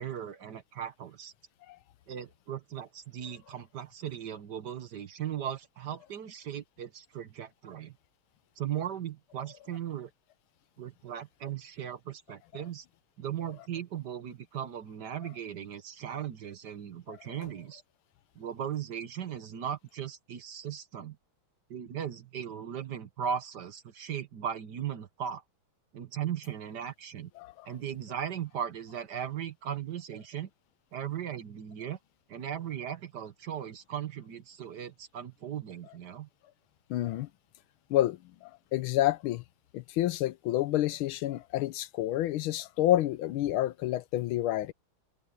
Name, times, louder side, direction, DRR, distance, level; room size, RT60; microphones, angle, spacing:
voice 1, 0.0-1.3 2.1-8.0 8.6-10.1 10.8-12.8 13.2-17.8 18.3-21.2 21.7-25.4 25.9-27.3 27.6-30.5 30.9-32.0 32.3-36.3, right 9 dB, 55° right, 1.5 m, -37 dB
voice 2, 27.4-27.7 36.9-37.3 37.9-39.4 39.7-44.7, left 14 dB, 80° left, 1.5 m, -29 dB
omnidirectional pair, 2.3 m